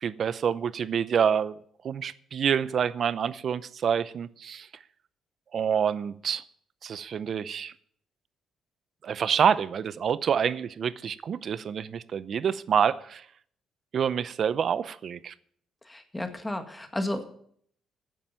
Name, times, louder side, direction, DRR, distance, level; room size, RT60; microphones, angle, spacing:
voice 1, 0.0-1.5 1.8-4.7 5.5-6.4 6.8-7.7 9.0-13.2 13.9-15.3, right 7 dB, 55° right, 17 dB, 0.6 m, -27 dB
voice 2, 15.9-17.3, left 1 dB, 10° left, 6 dB, 1.9 m, -33 dB
10.0 x 7.3 x 9.1 m, 0.64 s
cardioid pair, 85°, 0 cm